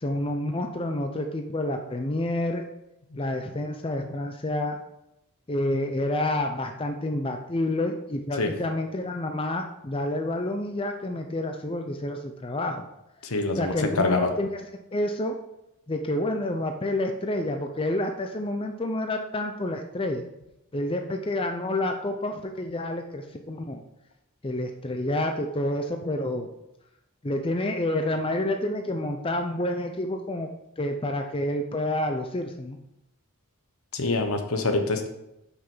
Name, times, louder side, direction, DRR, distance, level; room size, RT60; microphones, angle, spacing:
voice 1, 0.0-2.6 3.2-4.8 5.5-12.9 13.6-14.5 14.9-15.4 15.9-20.2 20.7-23.8 24.4-26.5 27.2-30.5 30.8-32.8, left 1 dB, 25° left, 4 dB, 0.6 m, -29 dB
voice 2, 13.2-14.3 33.9-35.1, left 3 dB, 70° left, 6 dB, 1.2 m, -25 dB
8.3 x 5.8 x 5.6 m, 0.87 s
head